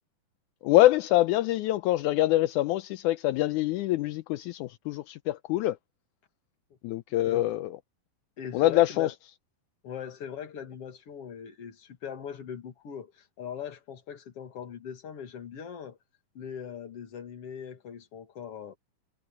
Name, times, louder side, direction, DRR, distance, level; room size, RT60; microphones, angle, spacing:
voice 1, 0.6-5.8 6.8-7.8 8.5-9.1, left 15 dB, 80° left, 2.1 m, -25 dB
voice 2, 8.4-9.1 9.8-16.0 16.3-18.8, left 8 dB, 50° left, 2.9 m, -40 dB
omnidirectional pair, 3.7 m